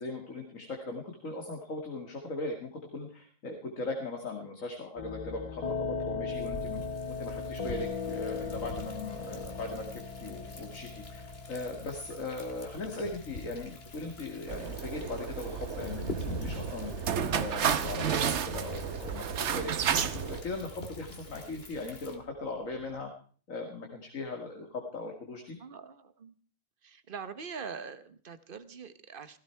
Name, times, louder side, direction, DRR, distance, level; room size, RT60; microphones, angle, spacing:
voice 1, 0.0-6.8 7.1-23.1 23.5-25.6, left 2 dB, 80° left, 3 dB, 2.5 m, -39 dB
sound 1, 5.0-22.9, left 4 dB, 35° left, 0.8 m, -41 dB
Thunder, 6.3-22.2, left 1 dB, 50° left, 2.3 m, -44 dB
sound 2, 14.5-20.4, right 8 dB, 60° right, 1.2 m, -32 dB
voice 2, 25.6-26.3 26.8-29.4, right 6 dB, 45° right, 13 dB, 1.2 m, -43 dB
17.0 x 16.5 x 4.5 m, 0.43 s
omnidirectional pair, 1.4 m